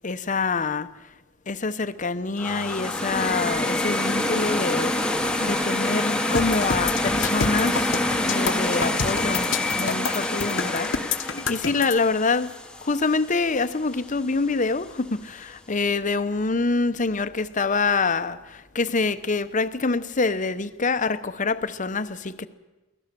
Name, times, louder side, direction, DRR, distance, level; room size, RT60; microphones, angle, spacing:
voice 1, 0.0-0.9 1.5-12.5 12.8-22.5, left 4 dB, 40° left, 0.9 m, -26 dB
sound 1, 2.4-13.4, left 1 dB, 5° left, 1.1 m, -26 dB
sound 2, 6.3-11.9, left 5 dB, 75° left, 1.1 m, -28 dB
23.5 x 17.0 x 6.8 m
head